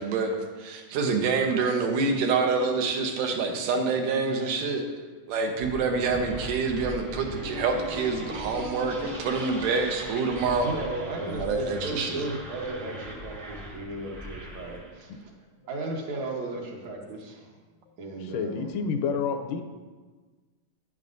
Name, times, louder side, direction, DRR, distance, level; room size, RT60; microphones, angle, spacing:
voice 1, 0.0-4.8 5.3-10.7 11.4-12.3, right 4 dB, 85° right, 3 dB, 2.5 m, -27 dB
sound 1, 5.6-15.0, equal, 45° right, 0.6 m, -39 dB
voice 2, 10.6-15.3 15.7-17.5 18.0-18.8, right 2 dB, 65° right, -1 dB, 2.2 m, -35 dB
voice 3, 18.2-19.6, left 5 dB, 85° left, 7 dB, 2.1 m, -29 dB
11.0 x 9.1 x 2.6 m, 1.4 s
omnidirectional pair, 3.7 m